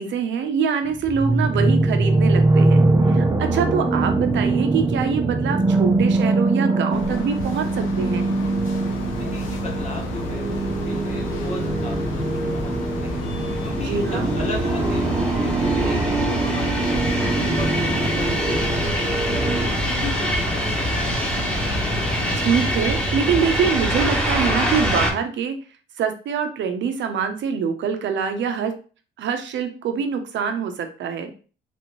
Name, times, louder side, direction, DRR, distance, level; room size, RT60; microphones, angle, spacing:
voice 1, 0.0-8.3 13.8-14.3 22.4-25.6 26.0-28.7 29.2-31.3, right 6 dB, 70° right, 7 dB, 0.7 m, -24 dB
sound 1, 1.0-19.7, right 2 dB, 15° right, 0.6 m, -22 dB
sound 2, 6.9-22.7, left 3 dB, 85° left, 0.7 m, -32 dB
sound 3, 8.4-25.1, equal, 5° left, 1.2 m, -26 dB
voice 2, 9.2-13.2 13.6-19.2 19.6-21.3, left 3 dB, 35° left, -1 dB, 1.4 m, -36 dB
3.4 x 2.7 x 3.0 m, 0.37 s
cardioid pair, 90°, 20 cm